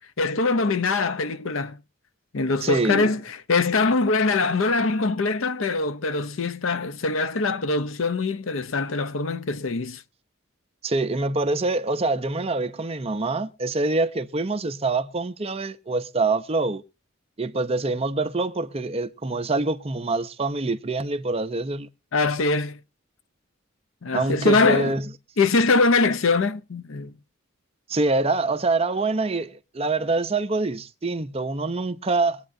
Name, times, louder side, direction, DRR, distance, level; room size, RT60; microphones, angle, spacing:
voice 1, 0.2-1.8 2.3-10.0 22.1-22.8 24.0-24.9 25.4-27.1, left 3 dB, 75° left, 0.7 m, -23 dB
voice 2, 2.6-3.1 10.8-16.8 17.4-21.9 24.1-25.1 27.9-32.4, right 3 dB, 30° right, 0.7 m, -25 dB
23.5 x 8.7 x 2.7 m
head